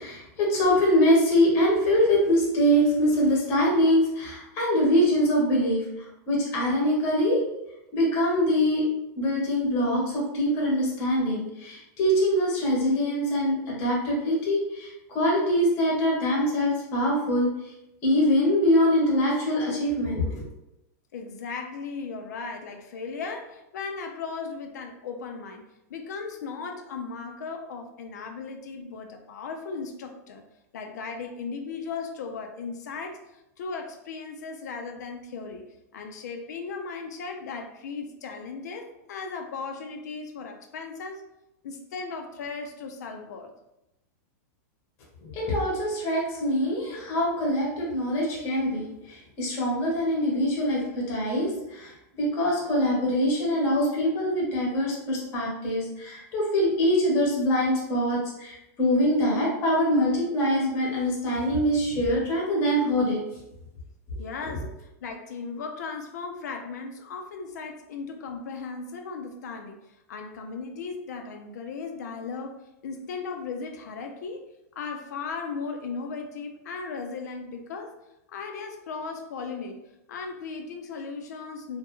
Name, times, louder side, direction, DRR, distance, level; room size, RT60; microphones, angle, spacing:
voice 1, 0.0-7.4 7.9-8.8 9.2-17.5 18.0-20.4 45.2-51.9 52.2-63.2, equal, 30° left, -3 dB, 0.8 m, -24 dB
voice 2, 21.1-30.4 30.7-35.6 35.9-41.2 41.6-43.5 64.2-69.8 70.1-74.4 74.8-77.9 78.3-79.8 80.1-81.8, left 4 dB, 85° left, 4 dB, 0.4 m, -36 dB
2.2 x 2.1 x 3.0 m, 0.88 s
supercardioid pair, 160°, 9 cm